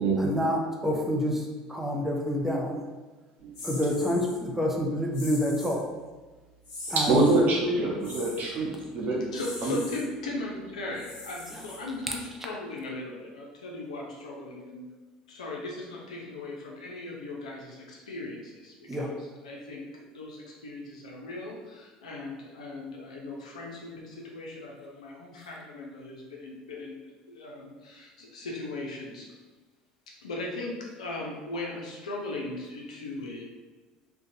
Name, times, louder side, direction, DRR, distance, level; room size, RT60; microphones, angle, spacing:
voice 1, 0.2-1.4 1.7-2.8 3.6-5.8 6.9-7.2 18.9-19.1, equal, 10° right, -1 dB, 0.6 m, -27 dB
sound 1, 3.5-4.4 5.1-5.8 6.6-7.4 8.0-8.5 9.3-10.0 10.9-12.1, left 2 dB, 70° left, 0.9 m, -42 dB
voice 2, 6.9-9.2 9.6-9.8, right 2 dB, 50° right, -3 dB, 0.8 m, -25 dB
voice 3, 9.1-14.9 15.3-27.0 27.3-29.3 30.1-33.5, left 2 dB, 85° left, -2 dB, 0.5 m, -38 dB
2.5 x 2.2 x 2.6 m, 1.3 s
hypercardioid pair, 70°, 4 cm